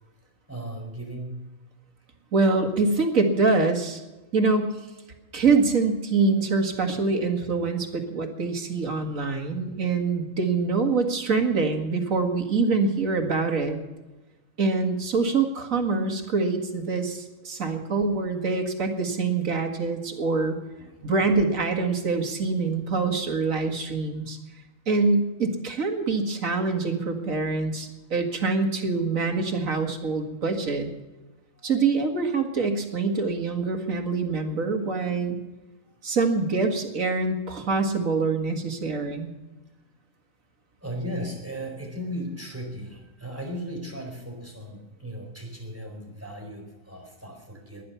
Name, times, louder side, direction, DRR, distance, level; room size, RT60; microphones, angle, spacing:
voice 1, 0.5-1.5 20.8-21.1 31.6-31.7 40.8-47.8, equal, 10° right, 1 dB, 4.4 m, -36 dB
voice 2, 2.3-4.0 4.3-4.8 5.3-13.8 14.6-20.6 21.0-24.4 24.9-30.9 31.6-35.4 36.0-39.3, right 4 dB, 75° right, 4 dB, 2.3 m, -25 dB
19.5 x 11.5 x 5.7 m, 1.1 s
omnidirectional pair, 1.4 m